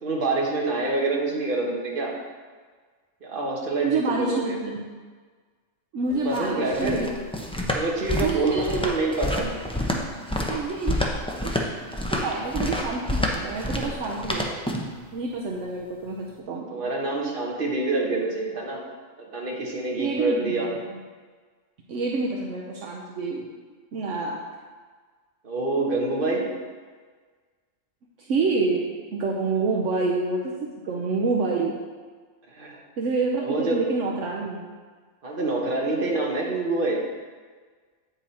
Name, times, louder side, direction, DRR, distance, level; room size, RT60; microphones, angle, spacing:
voice 1, 0.0-2.1 3.2-4.6 6.2-7.0 7.7-9.5 16.7-18.8 19.3-20.7 25.4-26.5 32.5-32.8 33.4-33.9 35.2-37.0, right 2 dB, 45° right, -2 dB, 1.5 m, -26 dB
voice 2, 3.8-4.9 5.9-7.1 8.2-8.8 10.5-11.0 11.4-11.7 12.1-14.6 15.1-16.9 20.0-21.0 21.9-23.5 23.9-24.4 28.2-28.9 29.1-30.6 30.8-31.8 33.0-34.7, right 3 dB, 70° right, -2 dB, 1.1 m, -27 dB
sound 1, 6.1-15.0, left 1 dB, 5° left, 0.4 m, -28 dB
8.7 x 5.4 x 4.3 m, 1.5 s
omnidirectional pair, 1.3 m